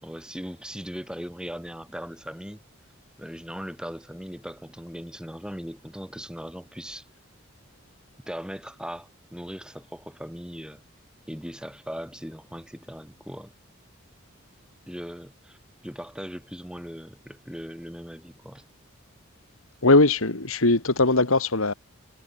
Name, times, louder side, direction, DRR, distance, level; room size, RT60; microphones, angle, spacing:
voice 1, 0.0-2.6 3.2-7.1 8.2-10.8 11.3-13.5 14.9-15.6 15.8-18.6, equal, 5° right, 5.6 m, -39 dB
voice 2, 19.8-21.7, left 2 dB, 90° left, 2.6 m, -20 dB
head